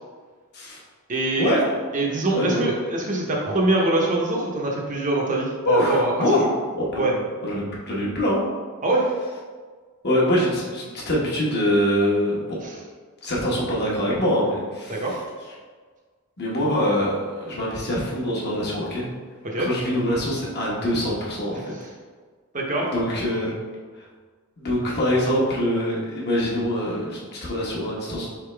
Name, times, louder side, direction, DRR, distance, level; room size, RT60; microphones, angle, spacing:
voice 1, 1.1-1.5 1.9-6.5 7.0-7.1 8.8-9.1 12.6-12.8 14.9-15.2 19.4-19.7 21.8-21.9 22.5-22.9, right 2 dB, 35° right, -2 dB, 0.8 m, -24 dB
voice 2, 2.3-2.6 5.6-6.4 6.7-7.1 7.4-8.4 10.0-12.6 13.2-14.9 16.4-19.1 19.6-21.6 22.9-23.5 24.6-28.3, equal, 50° left, -5 dB, 1.1 m, -24 dB
4.1 x 3.6 x 3.3 m, 1.5 s
head